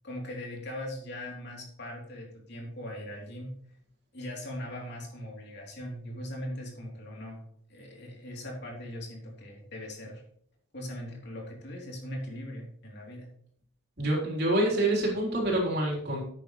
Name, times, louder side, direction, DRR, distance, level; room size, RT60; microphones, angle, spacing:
voice 1, 0.0-3.5 4.1-7.4 7.7-10.2 10.7-13.3, left 1 dB, 50° left, -1 dB, 3.3 m, -40 dB
voice 2, 14.0-16.2, right 1 dB, 50° right, -2 dB, 4.0 m, -26 dB
13.0 x 9.1 x 3.3 m, 0.65 s
head